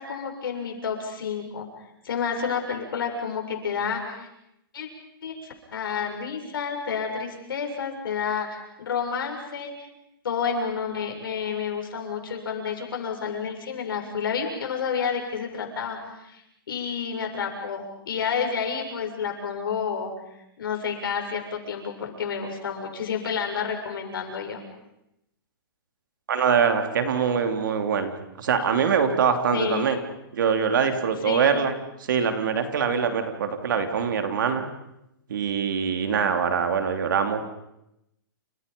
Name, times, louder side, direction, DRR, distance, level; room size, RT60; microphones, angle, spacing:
voice 1, 0.0-1.7 2.0-4.3 4.7-4.9 5.2-9.7 10.2-16.4 16.7-20.1 20.6-24.6 29.5-29.9 31.2-31.5, left 6 dB, 70° left, 2 dB, 7.2 m, -30 dB
voice 2, 26.3-28.1 28.4-30.0 30.3-31.8 32.1-34.7 35.3-37.4, right 6 dB, 60° right, 6 dB, 3.3 m, -23 dB
29.5 x 27.5 x 5.5 m, 0.85 s
hypercardioid pair, 170°, 12 cm